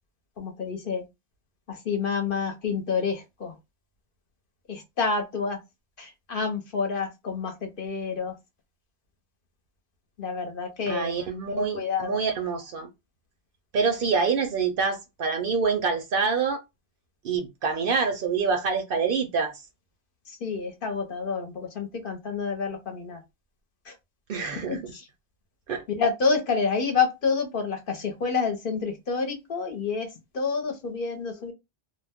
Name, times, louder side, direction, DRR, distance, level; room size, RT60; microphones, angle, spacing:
voice 1, 0.4-1.0 1.7-3.6 4.7-5.6 6.0-8.3 10.2-11.1 11.5-12.2 20.3-23.2 23.9-24.0 24.7-25.0 25.9-31.5, left 5 dB, 55° left, 0.8 m, -28 dB
voice 2, 10.9-12.9 13.7-16.6 17.2-19.6 24.3-24.8 25.7-25.8, right 5 dB, 60° right, 0.7 m, -26 dB
2.3 x 2.1 x 3.4 m
omnidirectional pair, 1.1 m